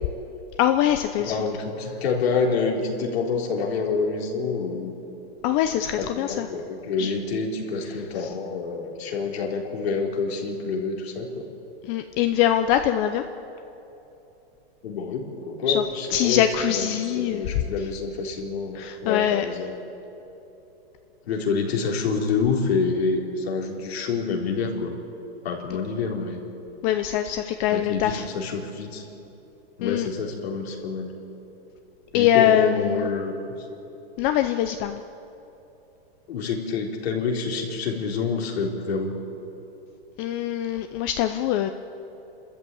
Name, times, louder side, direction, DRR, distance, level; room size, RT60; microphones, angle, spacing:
voice 1, 0.6-1.5 5.4-6.5 7.0-7.1 8.2-8.3 11.8-13.2 15.7-15.8 16.1-17.5 18.7-19.5 26.8-28.2 29.8-30.1 32.1-33.1 34.2-35.0 40.2-41.7, left 11 dB, 30° left, 8 dB, 0.6 m, -23 dB
voice 2, 1.2-4.9 6.0-11.5 14.8-16.4 16.7-16.9 17.2-19.7 21.3-25.0 25.4-26.4 27.7-29.0 29.8-31.1 32.1-33.3 36.3-39.2, left 4 dB, 80° left, 0 dB, 4.1 m, -27 dB
28.5 x 13.5 x 8.6 m, 3.0 s
supercardioid pair, 150°, 31 cm